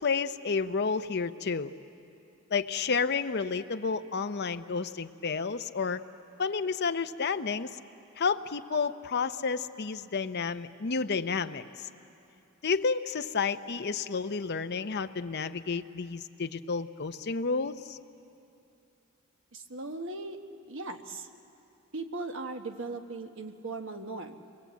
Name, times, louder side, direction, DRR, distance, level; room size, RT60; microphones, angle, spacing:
voice 1, 0.0-1.7 2.5-6.0 6.4-7.8 8.2-11.9 12.6-18.0, left 5 dB, 50° left, 10 dB, 0.7 m, -31 dB
voice 2, 19.5-20.4 20.7-21.3 21.9-24.4, right 3 dB, 60° right, 6 dB, 1.3 m, -38 dB
28.0 x 21.5 x 8.3 m, 2.8 s
head